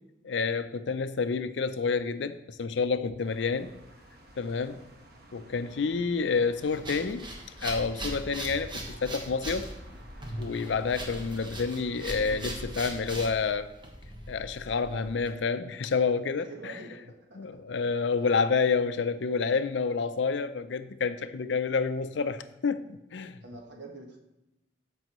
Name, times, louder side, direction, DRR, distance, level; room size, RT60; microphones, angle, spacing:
voice 1, 0.2-3.7 4.4-4.8 5.3-7.3 7.6-9.7 10.4-13.7 14.3-16.5 17.4-23.4, left 5 dB, 75° left, 12 dB, 0.5 m, -29 dB
sound 1, 3.2-12.8, right 1 dB, 55° right, 1.1 m, -52 dB
sound 2, 6.6-15.3, right 1 dB, 25° right, 1.2 m, -40 dB
voice 2, 16.4-17.6 21.4-21.5 23.4-24.2, right 2 dB, 70° right, 1 dB, 1.5 m, -46 dB
14.0 x 5.4 x 3.0 m, 0.92 s
head